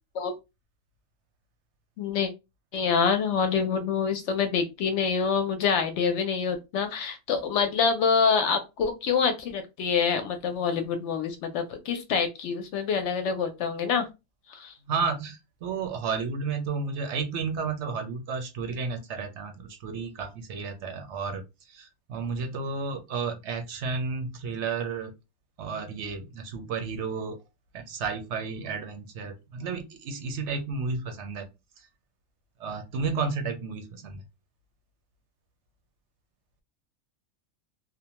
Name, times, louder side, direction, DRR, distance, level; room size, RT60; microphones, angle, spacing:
voice 1, 2.0-2.3 2.7-14.1 14.5-14.7, left 6 dB, 70° left, 7 dB, 0.8 m, -26 dB
voice 2, 14.9-25.1 25.6-27.4 27.7-31.5 32.6-34.2, right 5 dB, 70° right, 5 dB, 0.8 m, -32 dB
2.6 x 2.1 x 2.9 m, 0.24 s
omnidirectional pair, 1.3 m